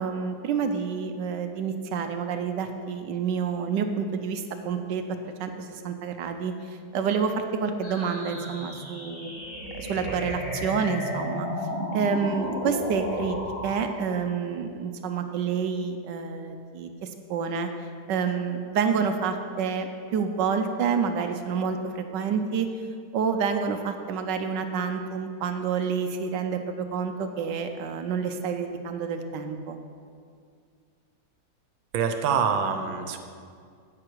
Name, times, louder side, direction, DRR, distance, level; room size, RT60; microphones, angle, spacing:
voice 1, 0.0-9.3 9.8-11.5 11.9-13.4 13.6-17.7 18.1-22.7 23.1-29.8, right 6 dB, 75° right, 7 dB, 1.2 m, -28 dB
sound 1, 7.8-13.8, left 1 dB, 35° left, 2.6 m, -33 dB
voice 2, 31.9-33.2, right 6 dB, 90° right, 7 dB, 1.6 m, -25 dB
9.8 x 8.6 x 4.6 m, 2.2 s
omnidirectional pair, 2.1 m